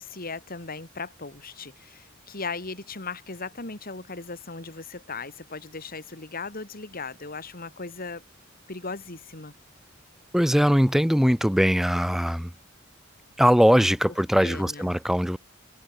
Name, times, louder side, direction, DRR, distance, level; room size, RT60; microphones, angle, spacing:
voice 1, 0.0-8.2 8.7-9.5 14.4-15.0, left 4 dB, 45° left, 3.1 m, -37 dB
voice 2, 10.3-12.5 13.4-15.4, equal, ahead, 0.8 m, -21 dB
head